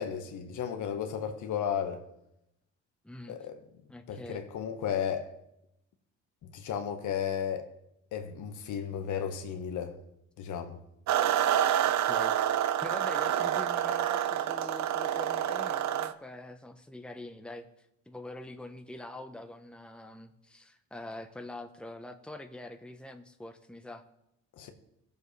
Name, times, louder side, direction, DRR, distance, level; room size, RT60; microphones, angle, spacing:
voice 1, 0.0-2.0 3.3-3.6 4.1-5.3 6.5-7.7 8.1-10.0 10.4-10.8 24.6-24.7, left 8 dB, 80° left, 1.3 m, -34 dB
voice 2, 3.0-3.4 3.9-4.4 11.8-12.4 12.8-17.7 18.1-24.0, left 1 dB, 5° left, 0.9 m, -44 dB
sound 1, 11.1-16.1, right 10 dB, 65° right, 0.6 m, -28 dB
17.0 x 6.9 x 3.3 m
cardioid pair, 90°, 30 cm